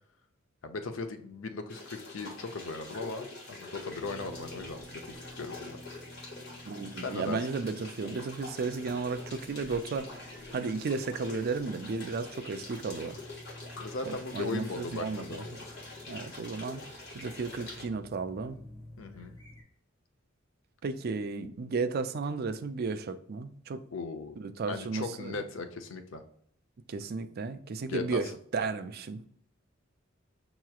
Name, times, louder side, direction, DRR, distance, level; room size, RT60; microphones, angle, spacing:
voice 1, 0.6-5.8 7.0-7.4 13.8-15.5 19.0-19.3 23.9-24.4 24.7-26.2 27.8-28.2, left 3 dB, 85° left, 0.6 m, -38 dB
sound 1, 1.7-17.8, left 2 dB, 60° left, 1.5 m, -45 dB
sound 2, 3.9-19.6, left 1 dB, 25° left, 1.6 m, -50 dB
voice 2, 6.6-13.2 14.0-15.4 16.1-18.6 20.8-23.8 24.4-25.4 26.9-29.2, right 4 dB, 50° right, 0.4 m, -34 dB
5.6 x 3.0 x 2.3 m
head